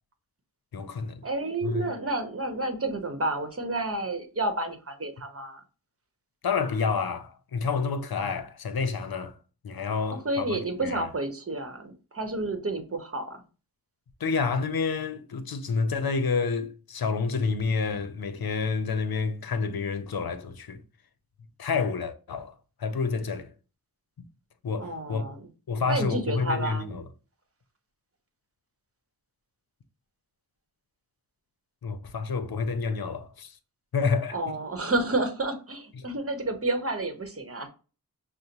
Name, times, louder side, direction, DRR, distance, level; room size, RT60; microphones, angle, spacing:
voice 1, 0.7-1.2 1.6-1.9 6.4-9.3 9.6-11.0 14.2-20.8 21.6-22.5 22.8-23.5 24.2-24.3 24.6-25.2 25.7-27.0 31.8-33.5 33.9-34.4 36.0-36.1, left 5 dB, 75° left, 0.7 m, -29 dB
voice 2, 1.2-5.6 10.2-13.4 24.8-25.5 25.9-27.0 34.3-37.7, right 2 dB, 40° right, 1.0 m, -30 dB
6.3 x 2.1 x 2.9 m
cardioid pair, 40°, 37 cm